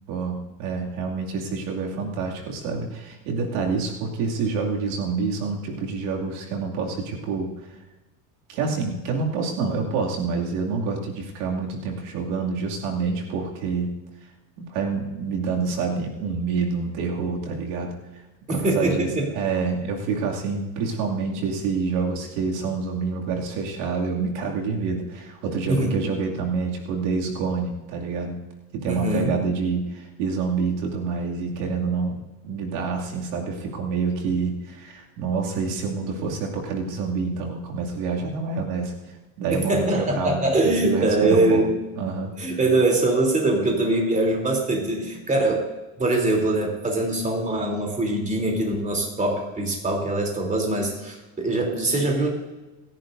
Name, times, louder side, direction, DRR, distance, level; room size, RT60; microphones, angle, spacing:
voice 1, 0.1-7.5 8.5-13.9 14.6-17.9 18.5-19.1 19.4-28.4 28.7-38.9 39.4-39.9 40.2-41.6 42.0-42.3, right 4 dB, 90° right, -1 dB, 2.6 m, -27 dB
voice 2, 18.5-19.3 25.7-25.9 28.9-29.3 39.5-41.8 42.4-45.6 46.0-52.3, right 2 dB, 15° right, 1 dB, 3.3 m, -23 dB
27.0 x 10.5 x 2.7 m, 1.1 s
cardioid pair, 135°, 43 cm